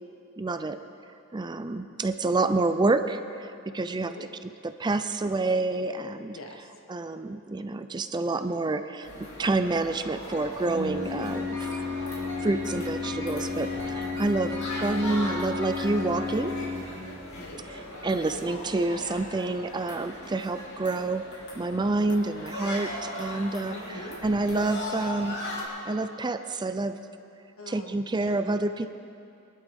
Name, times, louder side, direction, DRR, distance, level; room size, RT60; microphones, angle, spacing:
voice 1, 0.4-0.8 1.3-4.1 4.6-6.4 6.9-11.7 12.4-16.5 18.0-21.2 21.6-23.8 24.2-25.4 25.8-27.0 27.7-28.9, right 2 dB, 20° right, 9 dB, 0.4 m, -28 dB
voice 2, 3.9-4.3 6.3-6.7 17.3-17.6 23.7-24.2 27.6-28.3, left 1 dB, 80° left, 2 dB, 1.5 m, -44 dB
sound 1, 9.0-25.7, left 1 dB, 60° left, 3.0 m, -39 dB
Organ, 9.1-19.2, left 4 dB, 40° right, 1.4 m, -35 dB
sound 2, 11.2-17.2, equal, 15° left, 2.7 m, -42 dB
22.5 x 12.0 x 3.6 m, 2.6 s
head